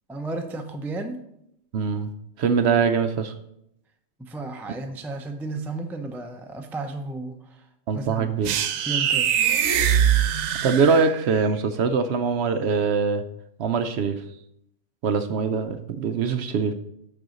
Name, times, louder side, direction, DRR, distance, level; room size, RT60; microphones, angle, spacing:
voice 1, 0.1-1.2 4.2-7.7 7.9-8.3 8.8-9.4, right 2 dB, 5° right, 5 dB, 0.3 m, -33 dB
voice 2, 1.7-2.1 2.4-3.3 7.9-8.5 10.6-13.2 13.6-14.2 15.0-16.7, right 5 dB, 65° right, 9 dB, 0.8 m, -23 dB
sound 1, 8.4-11.3, right 9 dB, 90° right, 1.0 m, -22 dB
6.6 x 6.1 x 5.1 m, 0.78 s
omnidirectional pair, 1.4 m